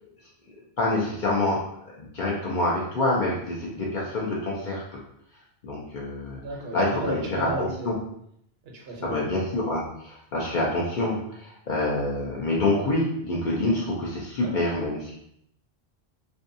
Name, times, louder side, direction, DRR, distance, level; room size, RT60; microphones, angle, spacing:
voice 1, 0.8-1.6 2.0-5.0 5.6-6.4 6.7-8.0 9.0-15.2, left 2 dB, 55° left, -4 dB, 0.6 m, -26 dB
voice 2, 6.4-7.9 8.6-9.3 14.4-14.8, right 1 dB, 70° right, 0 dB, 0.9 m, -35 dB
2.6 x 2.2 x 2.6 m, 0.72 s
omnidirectional pair, 1.1 m